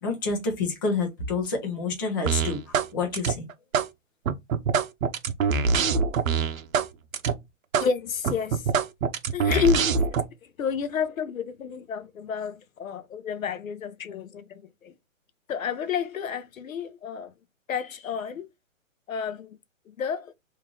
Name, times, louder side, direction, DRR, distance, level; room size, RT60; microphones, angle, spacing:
voice 1, 0.0-3.4, left 4 dB, 15° left, 0.6 m, -28 dB
sound 1, 2.3-2.9 3.1-3.9 4.3-6.9 7.1-7.3 7.7-7.9 8.2-10.2, right 5 dB, 75° right, 0.7 m, -24 dB
voice 2, 7.8-8.7 9.3-10.1 10.4-14.9 15.5-17.3 17.7-18.5 19.1-19.6 19.9-20.3, left 7 dB, 80° left, 0.8 m, -30 dB
3.2 x 2.6 x 3.7 m
hypercardioid pair, 160°, 40 cm